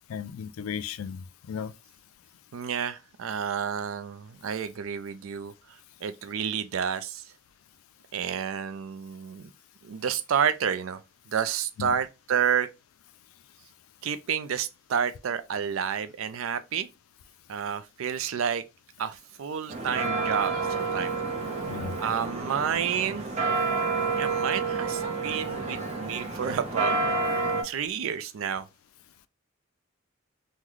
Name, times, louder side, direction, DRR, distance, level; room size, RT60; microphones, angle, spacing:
voice 1, 0.1-1.7 11.8-11.9 21.7-21.9, left 7 dB, 85° left, 0.3 m, -35 dB
voice 2, 2.5-7.2 8.1-9.5 9.8-11.0 11.3-12.7 14.0-16.9 17.5-18.6 19.0-21.2 22.0-23.4 24.2-27.0 27.6-28.7, right 7 dB, 75° right, 0.4 m, -30 dB
sound 1, 19.7-27.6, right 3 dB, 30° right, 0.7 m, -29 dB
3.7 x 2.1 x 3.1 m
head